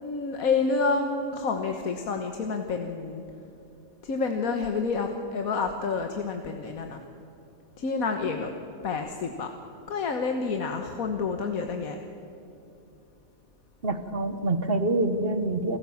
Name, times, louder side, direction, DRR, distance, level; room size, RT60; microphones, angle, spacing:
voice 1, 0.0-3.2 4.0-7.0 7.8-8.5 8.8-9.5 9.9-12.0, left 4 dB, 85° left, 5 dB, 1.6 m, -28 dB
voice 2, 13.8-15.8, right 2 dB, 45° right, 9 dB, 1.5 m, -26 dB
28.0 x 14.5 x 7.2 m, 2.8 s
omnidirectional pair, 1.4 m